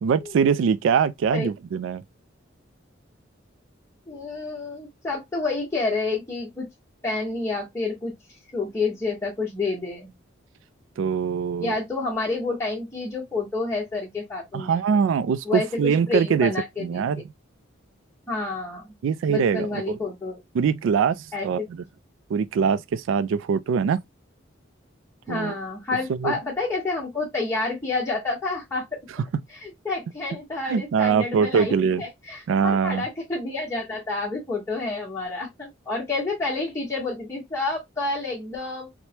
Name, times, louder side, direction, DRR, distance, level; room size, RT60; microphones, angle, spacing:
voice 1, 0.0-2.0 11.0-11.7 14.5-16.5 16.8-17.2 19.0-20.0 20.5-21.8 22.3-24.0 25.3-25.6 26.1-26.3 30.7-32.0 32.5-33.1, right 6 dB, 75° right, 0.3 m, -23 dB
voice 2, 4.1-6.7 7.0-8.1 8.5-10.1 11.6-14.8 15.4-17.0 18.3-18.9 19.3-20.4 21.3-21.7 25.3-29.0 29.6-38.9, left 3 dB, 15° left, 1.0 m, -29 dB
3.1 x 2.1 x 2.8 m
head